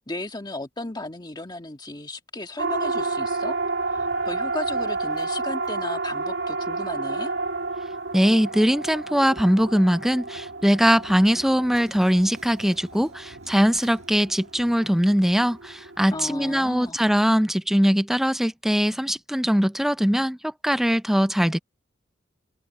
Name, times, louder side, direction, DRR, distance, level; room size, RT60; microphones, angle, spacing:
voice 1, 0.0-3.6 3.9-7.3 16.1-17.0, left 2 dB, 20° left, 1.7 m, -35 dB
Siren, 2.6-16.9, right 3 dB, 85° right, 1.8 m, -31 dB
voice 2, 8.1-21.6, equal, ahead, 0.4 m, -21 dB
sound 1, 11.7-15.1, right 6 dB, 35° right, 6.6 m, -58 dB
head